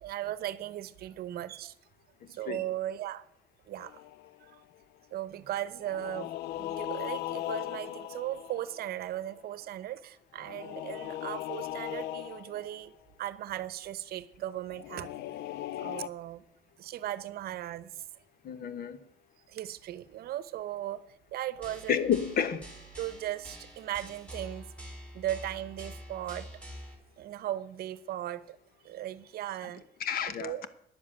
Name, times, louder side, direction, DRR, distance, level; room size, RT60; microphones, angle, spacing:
voice 1, 0.0-1.7 2.3-3.2 3.7-4.0 4.4-4.6 5.1-6.3 6.6-15.1 15.8-16.4 16.8-18.0 19.5-21.0 21.3-22.0 23.0-24.7 25.1-26.5 27.2-28.6 28.8-29.8 30.4-30.7, right 13 dB, 65° right, 0.8 m, -37 dB
sound 1, 3.8-4.6 5.8-9.3 10.4-12.8 14.7-16.1, left 14 dB, 80° left, 0.4 m, -38 dB
voice 2, 18.4-19.0 21.9-22.7 30.0-30.7, left 8 dB, 60° left, 1.1 m, -30 dB
sound 2, 21.6-26.9, equal, 5° left, 3.4 m, -46 dB
10.5 x 7.4 x 8.6 m
cardioid pair, 110°, 17 cm